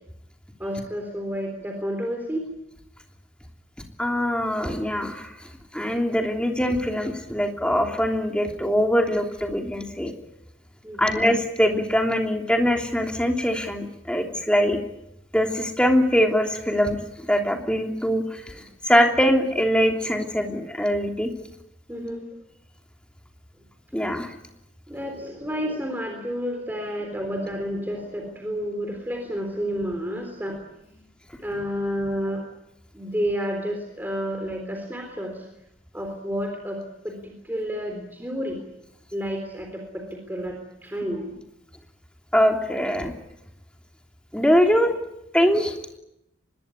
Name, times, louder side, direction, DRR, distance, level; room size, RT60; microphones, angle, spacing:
voice 1, 0.6-2.4 10.8-11.2 18.5-18.6 21.9-22.3 24.9-31.0 31.4-32.5 32.9-35.5 35.9-38.6 39.1-41.4 44.8-44.9, equal, 10° right, 3 dB, 3.7 m, -30 dB
voice 2, 4.0-5.3 5.7-10.1 11.0-14.8 15.3-17.0 17.3-18.4 18.8-21.3 23.9-24.3 42.3-43.1 44.3-44.9 45.3-45.8, equal, 5° left, 2 dB, 3.1 m, -22 dB
24.5 x 21.5 x 9.7 m, 0.83 s
head